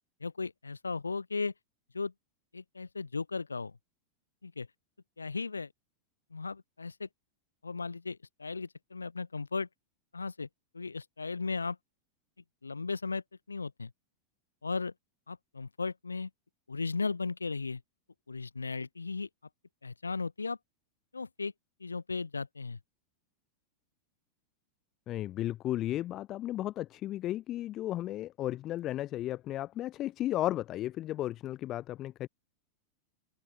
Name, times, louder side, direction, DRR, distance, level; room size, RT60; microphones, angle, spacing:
voice 1, 0.2-1.5 1.9-2.1 2.5-3.7 4.4-4.7 5.2-5.7 6.3-7.1 7.6-9.7 10.1-10.5 10.7-11.8 12.6-13.2 13.5-13.9 14.6-14.9 15.3-16.3 16.7-17.8 18.3-19.3 19.8-20.6 21.1-21.5 21.8-22.8, left 4 dB, 80° left, 1.3 m, -36 dB
voice 2, 25.1-32.3, left 14 dB, 35° left, 1.0 m, -34 dB
figure-of-eight pair, 90°, 0 cm